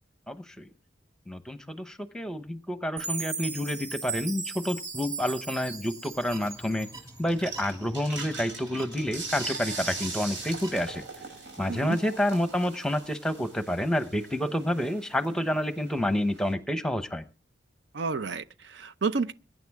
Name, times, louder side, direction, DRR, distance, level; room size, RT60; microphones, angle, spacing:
voice 1, 0.3-0.7 1.3-6.9 7.2-11.0 11.6-17.2, left 1 dB, 5° left, 0.9 m, -29 dB
Chime, 3.0-7.2, right 5 dB, 40° right, 5.5 m, -37 dB
sound 1, 6.1-11.1, right 1 dB, 20° right, 2.8 m, -48 dB
sound 2, 7.3-16.5, right 3 dB, 90° right, 6.8 m, -41 dB
voice 2, 17.9-19.3, right 4 dB, 75° right, 0.6 m, -30 dB
23.0 x 9.6 x 3.5 m
head